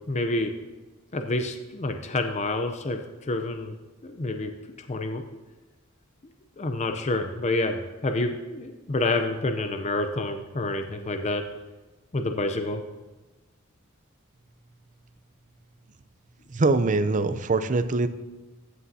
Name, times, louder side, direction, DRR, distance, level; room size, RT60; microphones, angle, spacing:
voice 1, 0.1-0.5 1.1-3.8 4.0-5.2 6.6-11.4 12.1-12.8, left 2 dB, 30° left, 6 dB, 0.6 m, -28 dB
voice 2, 16.5-18.1, right 3 dB, 35° right, 12 dB, 0.5 m, -23 dB
15.0 x 8.4 x 2.8 m, 1.2 s
head